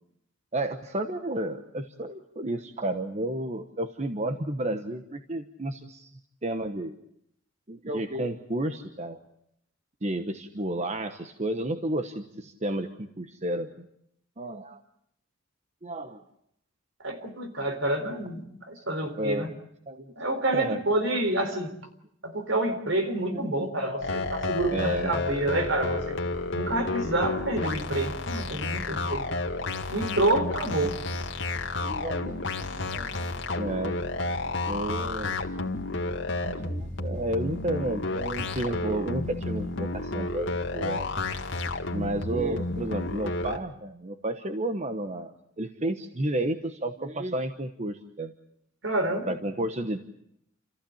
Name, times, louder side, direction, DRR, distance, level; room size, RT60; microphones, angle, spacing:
voice 1, 0.5-6.1 6.4-7.0 7.7-9.2 10.0-13.9 14.4-14.8 15.8-16.2 19.2-19.5 19.9-20.1 20.5-20.8 23.3-23.4 24.7-25.2 31.8-34.1 34.7-35.4 36.4-41.1 41.9-45.3 45.6-48.3 49.3-50.0, right 1 dB, 35° right, 7 dB, 1.1 m, -32 dB
voice 2, 17.0-19.5 20.2-21.7 22.2-26.2 26.5-29.3 29.9-31.0 48.8-49.3, right 1 dB, 70° right, 6 dB, 3.9 m, -28 dB
sound 1, 24.0-43.6, left 2 dB, 65° left, 2.0 m, -31 dB
29.0 x 15.0 x 8.7 m, 0.74 s
head